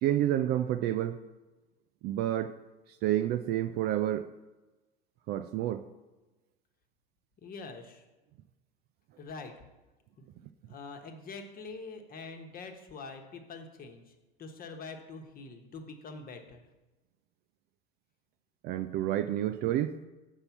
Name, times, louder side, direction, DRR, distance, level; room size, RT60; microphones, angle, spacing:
voice 1, 0.0-1.2 2.0-2.5 3.0-4.3 5.3-5.8 18.6-19.9, right 12 dB, 35° right, 10 dB, 0.4 m, -29 dB
voice 2, 7.4-8.0 9.2-9.5 10.2-10.3 10.7-16.6, left 4 dB, 30° left, 5 dB, 1.2 m, -45 dB
6.8 x 5.4 x 5.8 m, 1.1 s
hypercardioid pair, 85°, 29 cm